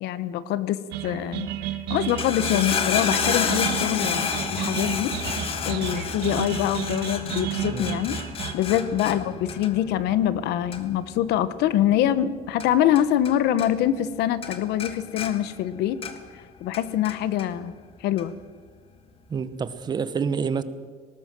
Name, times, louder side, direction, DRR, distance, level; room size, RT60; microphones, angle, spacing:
voice 1, 0.0-1.5 1.9-5.1 5.6-8.2 8.5-16.0 16.6-17.7 18.0-18.3, left 11 dB, 80° left, 1.2 m, -24 dB
sound 1, 0.9-8.6, right 11 dB, 80° right, 1.7 m, -32 dB
sound 2, 2.0-13.3 13.6-14.2 14.4-16.4 16.7-17.5 18.2-18.3, left 6 dB, 35° left, 1.6 m, -30 dB
voice 2, 19.3-20.6, right 6 dB, 25° right, 1.0 m, -28 dB
19.5 x 18.5 x 7.7 m
cardioid pair, 175°, 17 cm